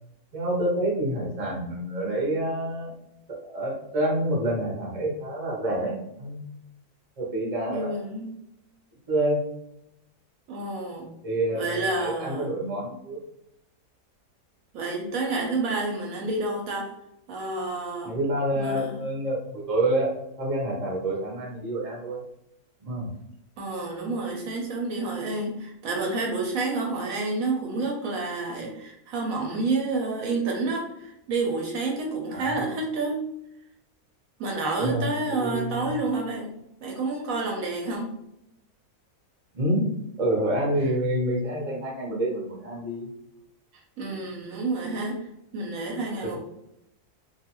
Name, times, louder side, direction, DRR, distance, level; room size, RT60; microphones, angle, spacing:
voice 1, 0.3-2.9 3.3-6.4 7.2-7.9 9.1-9.4 11.2-13.2 18.0-20.1 20.4-22.2 22.8-23.1 32.3-32.5 34.8-36.0 39.5-39.8 40.2-43.1 46.2-46.4, right 1 dB, 40° right, -3 dB, 0.5 m, -27 dB
voice 2, 7.7-8.4 10.5-11.1 11.5-12.5 14.7-16.9 17.3-18.1 18.6-19.1 23.6-33.2 34.4-36.5 36.8-38.1 43.7-45.2 45.5-46.4, right 3 dB, 70° right, 0 dB, 0.9 m, -29 dB
2.6 x 2.3 x 2.9 m, 0.82 s
omnidirectional pair, 1.6 m